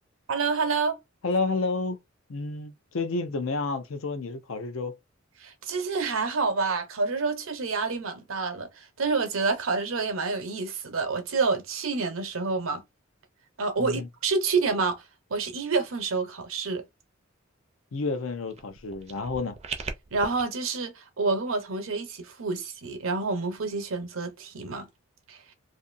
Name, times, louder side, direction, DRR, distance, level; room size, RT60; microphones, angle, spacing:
voice 1, 0.3-1.0 5.4-12.8 13.6-15.0 15.3-16.8 20.1-24.9 25.3-25.4, right 4 dB, 85° right, 0.8 m, -28 dB
voice 2, 1.2-2.0 2.3-4.9 13.8-14.1 17.9-19.6, left 3 dB, 75° left, 0.6 m, -30 dB
sound 1, 18.5-20.4, right 5 dB, 30° right, 0.4 m, -39 dB
2.6 x 2.5 x 2.5 m
head